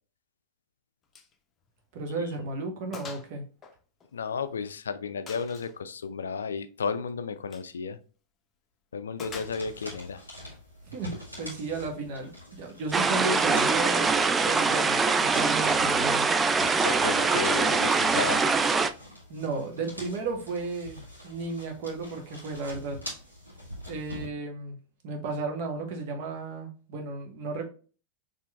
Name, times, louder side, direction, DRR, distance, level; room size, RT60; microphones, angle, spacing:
Gunshot gunfire, 1.1-1.3 1.7-1.8 2.3-2.4 2.9-3.3 3.6-4.6 5.3-5.8 7.4-7.7 9.2-9.9, left 5 dB, 25° left, 0.6 m, -45 dB
voice 1, 1.9-3.4 10.9-14.1 14.4-16.3 19.3-23.0 23.9-24.8 25.0-27.7, right 3 dB, 45° right, 1.1 m, -34 dB
voice 2, 4.1-8.0 8.9-10.2 16.8-18.5, left 5 dB, 70° left, 0.3 m, -33 dB
sound 1, 9.2-24.2, equal, 90° right, 1.6 m, -45 dB
sound 2, 12.9-18.9, right 4 dB, 15° right, 0.3 m, -23 dB
4.4 x 3.1 x 2.3 m
figure-of-eight pair, 90°, 0 cm